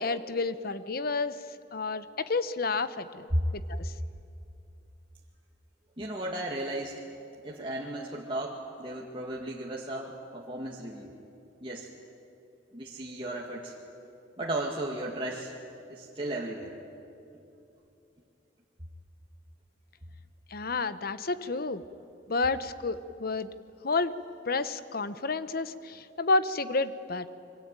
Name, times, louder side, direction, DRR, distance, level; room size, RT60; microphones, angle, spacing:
voice 1, 0.0-1.3 1.7-3.9 20.5-21.8 22.3-23.5 23.8-24.2 24.5-27.3, left 3 dB, 55° left, 13 dB, 1.0 m, -30 dB
voice 2, 6.0-7.0 7.4-11.1 11.6-11.9 12.7-13.7 14.4-15.5 15.9-16.7, right 1 dB, 30° right, -3 dB, 2.1 m, -34 dB
28.0 x 23.5 x 9.0 m, 2.7 s
head